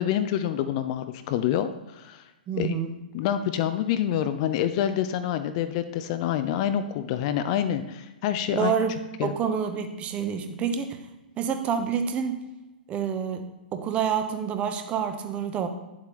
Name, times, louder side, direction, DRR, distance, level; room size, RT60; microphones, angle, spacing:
voice 1, 0.0-2.2 2.6-2.7 3.1-8.7 9.2-9.3, left 10 dB, 40° left, 10 dB, 0.5 m, -27 dB
voice 2, 2.5-2.9 8.5-11.0 11.4-12.4 12.9-13.5 13.7-15.7, right 7 dB, 25° right, 7 dB, 0.8 m, -28 dB
9.6 x 7.3 x 3.1 m, 1.0 s
figure-of-eight pair, 115°, 5 cm